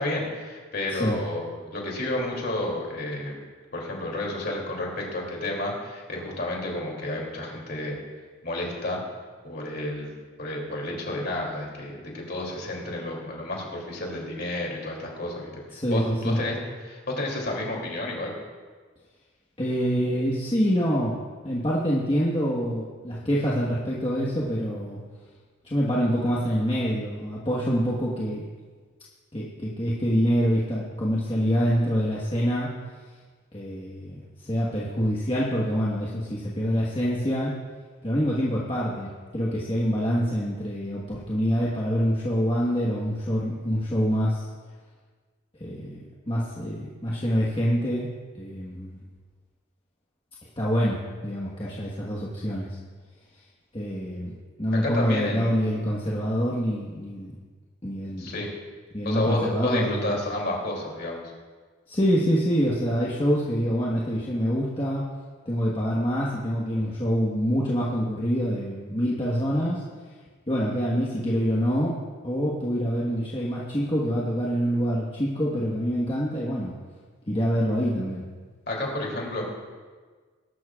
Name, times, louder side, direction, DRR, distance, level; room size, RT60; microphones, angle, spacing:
voice 1, 0.0-3.4 3.7-8.0 8.4-9.0 9.4-15.6 15.9-16.6 16.8-18.3 54.8-55.5 58.2-58.5 59.0-61.2 78.7-79.4, left 1 dB, 50° left, -1 dB, 2.9 m, -31 dB
voice 2, 15.7-16.4 19.6-21.1 21.4-25.0 25.6-28.5 29.3-32.7 33.5-37.5 38.0-44.5 45.6-48.1 48.3-49.0 50.6-52.7 53.7-54.3 54.6-57.3 57.8-58.3 58.9-60.2 61.9-65.0 65.4-69.8 70.5-71.9 72.2-76.7 77.3-78.2, equal, 25° left, -6 dB, 1.4 m, -26 dB
21.0 x 12.0 x 2.5 m, 1.5 s
head